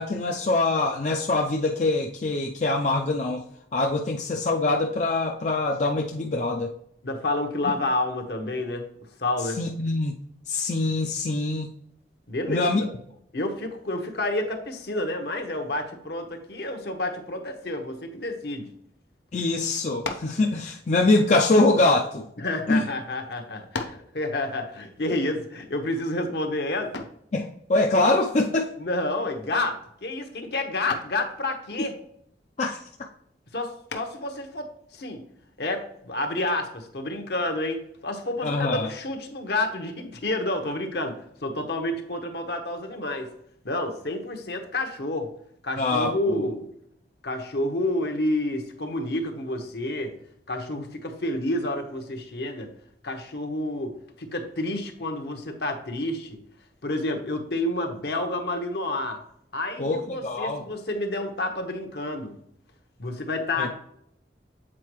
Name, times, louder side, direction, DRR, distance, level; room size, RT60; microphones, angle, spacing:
voice 1, 0.0-3.4 3.7-6.7 9.6-10.2 10.5-11.7 12.5-12.8 19.3-22.3 22.7-22.8 27.3-28.7 31.8-31.9 32.6-32.8 38.4-38.9 45.8-46.5 59.8-60.6 63.6-63.7, left 2 dB, 40° left, 1 dB, 0.5 m, -24 dB
voice 2, 7.0-8.9 9.2-9.6 12.3-12.9 13.3-18.7 22.4-27.0 28.8-31.9 33.5-35.2 35.6-43.3 43.6-45.3 45.6-46.7 47.2-50.1 50.5-52.7 53.0-56.4 56.8-59.2 59.5-62.3 63.0-63.7, left 2 dB, 65° left, 4 dB, 1.0 m, -29 dB
sound 1, 20.0-20.4 21.4-22.5 23.2-23.3 23.7-24.1 26.9-27.3 29.2-29.6 29.9-30.3 30.9-31.2 33.9-34.3, left 4 dB, 90° left, 0.7 m, -36 dB
7.5 x 4.4 x 3.1 m, 0.72 s
head